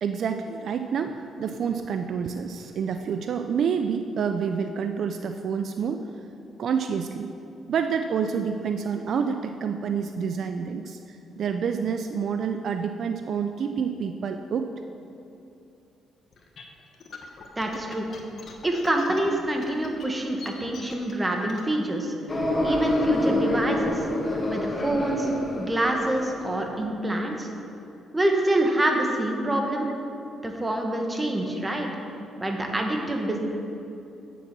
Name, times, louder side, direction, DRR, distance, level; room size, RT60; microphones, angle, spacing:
voice 1, 0.0-6.1 6.6-7.3 7.7-14.7, right 6 dB, 60° right, 7 dB, 0.4 m, -28 dB
sound 1, 16.3-21.7, left 4 dB, 55° left, 1.2 m, -44 dB
voice 2, 17.6-18.1 18.6-22.1 22.6-24.1 24.5-25.3 25.6-27.5 28.1-29.9 30.4-31.9 32.4-33.4, right 1 dB, 15° right, 2 dB, 1.4 m, -26 dB
sound 2, 22.3-26.7, left 1 dB, 25° left, 1.7 m, -27 dB
8.6 x 7.0 x 6.0 m, 2.7 s
cardioid pair, 90°, 0 cm